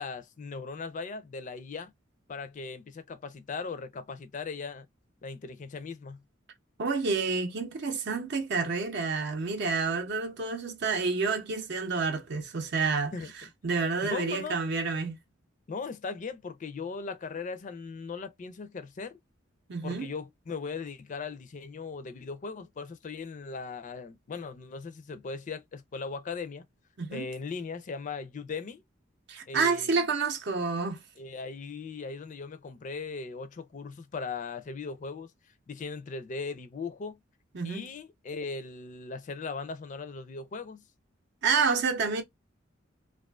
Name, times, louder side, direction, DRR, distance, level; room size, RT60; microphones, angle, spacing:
voice 1, 0.0-1.9 2.3-4.9 5.2-6.2 13.1-13.3 14.1-14.6 15.7-19.2 19.8-26.6 27.1-28.8 29.5-30.1 31.2-35.3 35.7-37.2 37.6-40.8, left 4 dB, 40° left, 0.4 m, -38 dB
voice 2, 6.8-13.1 13.6-15.2 19.7-20.1 27.0-27.3 29.3-31.0 37.5-37.9 41.4-42.2, right 4 dB, 60° right, 0.6 m, -29 dB
2.4 x 2.4 x 2.2 m
head